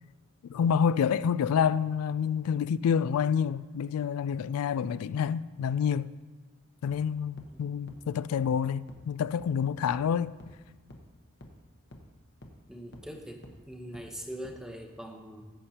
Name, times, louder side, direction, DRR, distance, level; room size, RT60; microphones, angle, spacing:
voice 1, 0.4-6.1 6.8-10.3, left 7 dB, 85° left, 0.3 m, -28 dB
sound 1, 6.9-7.0 7.4-7.5 7.9-8.0 8.4-8.5 8.9-9.0 9.4-9.5 9.9-10.0 10.4-10.5 10.9-11.0 11.4-11.5 11.9-12.0 12.4-12.5 12.9-13.0 13.4-13.5 13.9-14.0 14.4-14.5, left 1 dB, 50° left, 1.0 m, -48 dB
voice 2, 12.7-15.4, equal, 5° right, 0.8 m, -42 dB
16.0 x 8.3 x 2.8 m
head